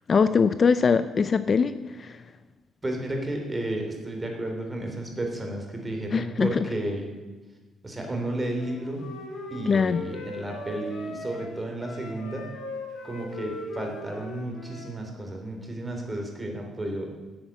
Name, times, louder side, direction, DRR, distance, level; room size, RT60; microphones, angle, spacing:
voice 1, 0.1-1.7 2.0-2.2 6.1-6.5 9.7-10.0, left 5 dB, 40° left, 12 dB, 0.5 m, -21 dB
voice 2, 2.8-7.1 7.8-9.1 9.5-12.5 13.0-17.2, right 1 dB, 20° right, 2 dB, 3.2 m, -32 dB
Wind instrument woodwind instrument, 8.6-14.9, left 2 dB, 70° left, 2.9 m, -39 dB
10.0 x 8.0 x 7.3 m, 1.2 s
cardioid pair, 90°, 0 cm